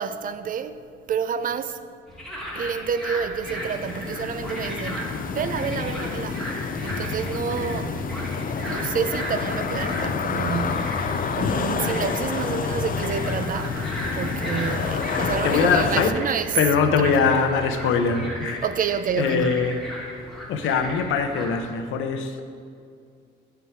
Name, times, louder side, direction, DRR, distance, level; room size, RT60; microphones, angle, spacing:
voice 1, 0.0-1.8 2.5-8.0 8.4-13.8 14.1-16.7 17.0-17.3 18.6-19.7, right 7 dB, 45° right, 0.4 m, -29 dB
sound 1, 2.1-21.6, equal, ahead, 1.6 m, -36 dB
sound 2, 3.4-16.1, left 5 dB, 45° left, 0.5 m, -28 dB
sound 3, 6.8-18.3, equal, 15° right, 1.7 m, -38 dB
voice 2, 15.4-16.1 16.5-18.6 19.2-19.8 20.5-22.4, left 5 dB, 80° left, 0.7 m, -22 dB
6.8 x 6.0 x 4.7 m
cardioid pair, 90°, 20 cm